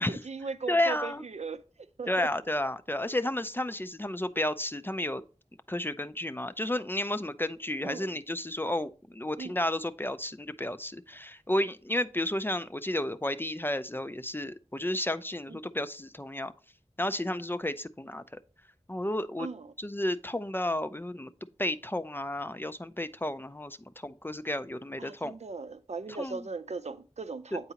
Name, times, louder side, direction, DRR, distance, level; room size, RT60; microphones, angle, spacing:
voice 1, 0.1-1.6 2.0-2.3 7.8-8.1 9.4-9.6 15.5-15.6 19.4-19.7 25.0-27.7, right 4 dB, 75° right, 0.5 m, -38 dB
voice 2, 0.7-1.2 2.1-5.2 5.7-16.5 17.0-18.2 18.9-19.5 19.8-21.3 21.6-25.3 26.2-26.5 27.5-27.6, left 1 dB, 20° left, 0.3 m, -32 dB
8.0 x 4.7 x 2.8 m
wide cardioid pair, 55°, 12 cm